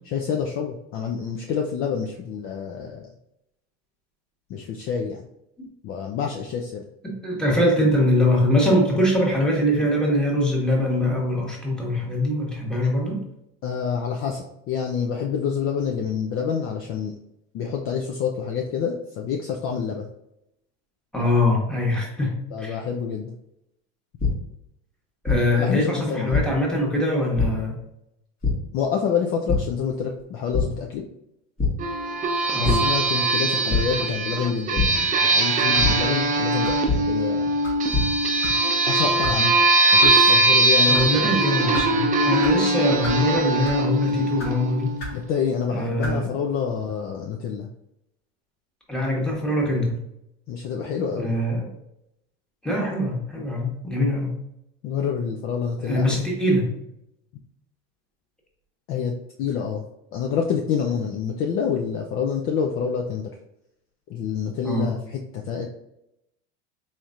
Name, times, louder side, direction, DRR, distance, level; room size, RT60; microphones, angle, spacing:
voice 1, 0.1-3.1 4.5-5.2 5.8-6.8 13.6-17.2 17.5-20.1 22.5-23.4 25.5-26.5 28.7-31.0 32.6-37.5 38.9-39.6 39.9-41.4 45.1-47.7 50.5-51.3 54.8-56.2 58.9-59.1 59.4-59.8 60.1-63.3 64.1-65.7, left 7 dB, 40° left, 2 dB, 0.4 m, -27 dB
voice 2, 7.0-13.2 21.1-22.8 25.2-27.8 32.5-32.8 40.9-45.0 45.7-46.3 48.9-50.0 51.2-51.7 52.6-54.4 55.8-56.7 64.6-64.9, left 1 dB, ahead, -2 dB, 1.1 m, -23 dB
sound 1, 24.2-24.3 25.2-25.4 26.3-26.4 27.4-27.5 28.4-28.5 29.5-29.6 30.0-30.2 30.5-30.6 31.6-31.7 32.6-32.8 33.7-33.8 34.7-34.8 35.8-35.9 36.9-37.0 37.7-38.0, left 5 dB, 25° left, 1.1 m, -21 dB
sound 2, 31.8-45.0, right 2 dB, 25° right, 0.5 m, -21 dB
sound 3, 35.7-36.0 36.6-36.9 37.6-37.8 38.4-38.6 39.2-39.4 40.0-40.1 40.8-41.1 41.7-41.9 42.4-42.5 43.0-43.2 43.6-43.9 44.4-44.5 45.0-45.2 46.0-46.2, equal, 85° left, 1.3 m, -35 dB
4.2 x 3.1 x 2.4 m, 0.82 s
supercardioid pair, 110°, 35 cm